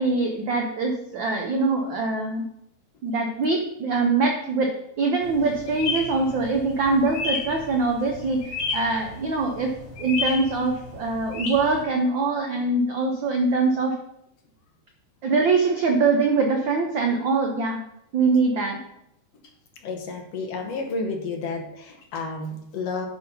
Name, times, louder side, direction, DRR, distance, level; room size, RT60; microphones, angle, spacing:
voice 1, 0.0-2.5 3.0-8.4 8.7-9.7 10.0-13.9 15.2-17.8 18.1-18.8, right 3 dB, 85° right, 2 dB, 1.0 m, -23 dB
sound 1, 5.2-11.8, left 4 dB, 50° left, 2.1 m, -33 dB
voice 2, 19.8-23.1, left 3 dB, 65° left, 3 dB, 1.9 m, -31 dB
9.8 x 4.0 x 5.5 m, 0.80 s
omnidirectional pair, 3.3 m